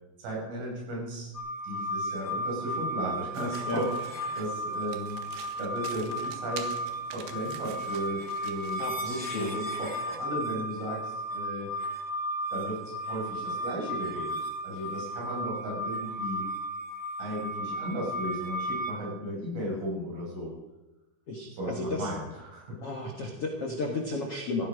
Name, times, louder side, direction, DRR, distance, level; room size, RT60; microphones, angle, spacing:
voice 1, 0.2-1.3 1.6-5.2 5.6-6.8 7.1-11.7 12.5-14.4 14.6-16.4 17.2-20.5 21.5-22.8, equal, 85° right, -3 dB, 9.7 m, -35 dB
sound 1, 1.3-18.9, right 1 dB, 30° left, 1.2 m, -34 dB
Domestic sounds home sounds, 3.3-9.0, right 7 dB, 65° right, 3.2 m, -47 dB
voice 2, 8.8-9.7 21.3-22.1 22.8-24.7, left 2 dB, 70° left, 1 dB, 1.4 m, -33 dB
16.0 x 15.5 x 5.2 m, 1.0 s
omnidirectional pair, 5.5 m